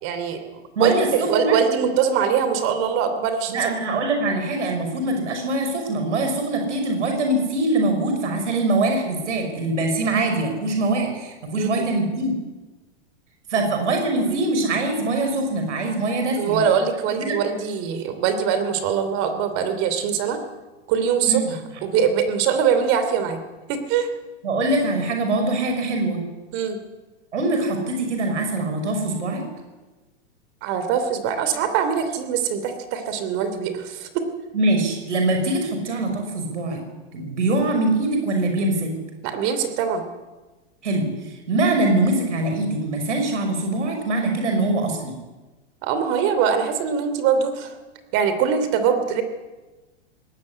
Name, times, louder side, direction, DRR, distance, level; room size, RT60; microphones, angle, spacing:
voice 1, 0.0-3.7 11.6-11.9 13.6-13.7 14.2-14.4 16.4-20.4 20.9-21.4 21.8-23.4 23.7-24.1 26.5-26.8 30.6-34.2 39.2-40.0 45.8-47.7 48.1-49.2, right 7 dB, 40° right, 9 dB, 3.1 m, -22 dB
voice 2, 0.8-1.6 3.5-12.4 13.5-16.6 17.2-17.4 21.3-21.5 24.4-26.2 27.3-29.4 34.5-36.8 37.1-38.9 40.8-45.2, right 2 dB, 90° right, 4 dB, 5.7 m, -23 dB
19.0 x 17.0 x 9.9 m, 1.2 s
hypercardioid pair, 140°, 35 cm